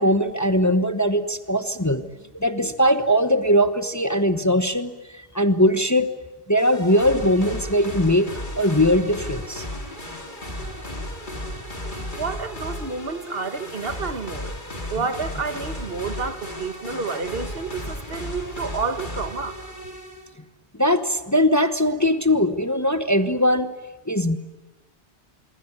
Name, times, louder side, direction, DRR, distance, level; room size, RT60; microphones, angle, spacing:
voice 1, 0.0-2.1 2.3-6.1 6.5-9.6 20.7-23.7 24.1-24.4, equal, 15° left, 1.1 m, -20 dB
sound 1, 6.6-20.3, left 1 dB, 45° left, 3.6 m, -34 dB
voice 2, 12.2-14.5 14.9-19.6, right 4 dB, 60° right, 1.5 m, -30 dB
26.0 x 24.0 x 9.6 m
omnidirectional pair, 1.1 m